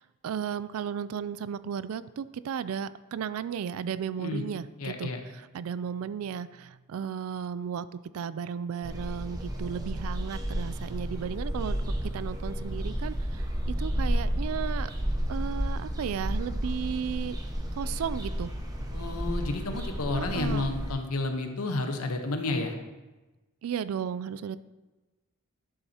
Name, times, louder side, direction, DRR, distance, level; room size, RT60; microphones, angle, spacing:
voice 1, 0.0-7.9 8.1-11.8 12.1-14.9 15.3-17.4 17.8-18.5 20.1-20.7 23.6-24.6, right 7 dB, 70° right, 15 dB, 0.3 m, -34 dB
voice 2, 4.8-5.2 18.9-22.8, left 2 dB, 85° left, 5 dB, 1.0 m, -31 dB
sound 1, 8.8-20.9, equal, 15° right, 0.9 m, -32 dB
11.5 x 7.1 x 2.9 m, 1.1 s
head